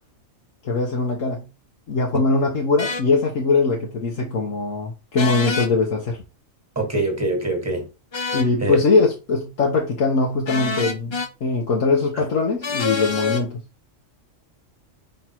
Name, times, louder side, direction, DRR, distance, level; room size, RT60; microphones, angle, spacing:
voice 1, 0.6-1.4 1.9-6.2 8.3-13.6, left 3 dB, 75° left, 1.5 m, -21 dB
sound 1, 2.8-3.0 5.2-5.7 8.1-8.5 10.5-11.3 12.6-13.4, left 4 dB, 40° left, 0.4 m, -26 dB
voice 2, 6.7-7.9 8.6-8.8, right 2 dB, 10° right, 1.6 m, -23 dB
5.5 x 4.0 x 4.5 m
omnidirectional pair, 1.3 m